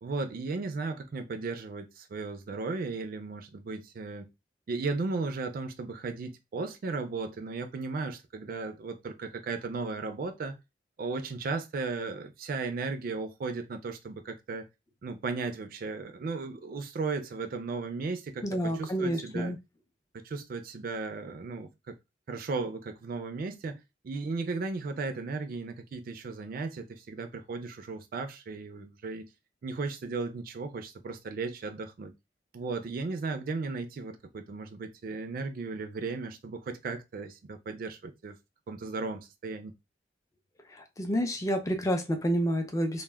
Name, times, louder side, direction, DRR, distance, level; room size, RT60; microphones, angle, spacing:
voice 1, 0.0-4.3 4.7-10.6 11.0-14.7 15.0-19.5 20.1-22.0 22.3-29.3 29.6-32.1 32.5-38.4 38.7-39.7, right 4 dB, 55° right, 0.3 m, -35 dB
voice 2, 18.4-19.6 40.7-43.0, equal, 20° left, 0.4 m, -29 dB
2.1 x 2.1 x 3.3 m
head